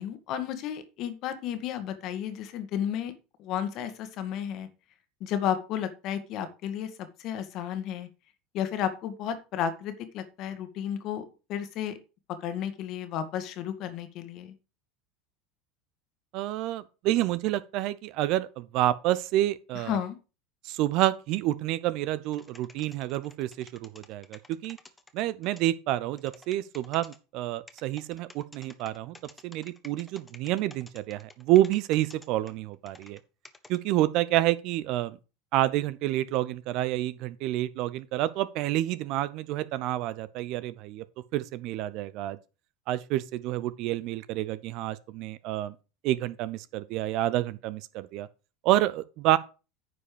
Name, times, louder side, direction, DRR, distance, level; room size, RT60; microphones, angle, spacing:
voice 1, 0.0-3.1 3.4-4.7 5.2-8.1 8.5-11.2 11.5-12.0 12.4-14.5 19.7-20.2, left 9 dB, 50° left, 1.7 m, -32 dB
voice 2, 16.3-20.0 20.6-24.8 25.1-29.1 29.4-33.2 33.7-35.2 35.5-41.0 41.3-42.4 42.9-45.7 46.0-48.3 48.6-49.4, right 14 dB, 55° right, 0.6 m, -28 dB
sound 1, 22.3-25.7 26.2-27.2 27.7-33.2 33.5-33.8, left 3 dB, 10° left, 1.2 m, -51 dB
9.7 x 5.2 x 5.0 m
hypercardioid pair, 80°, 0 cm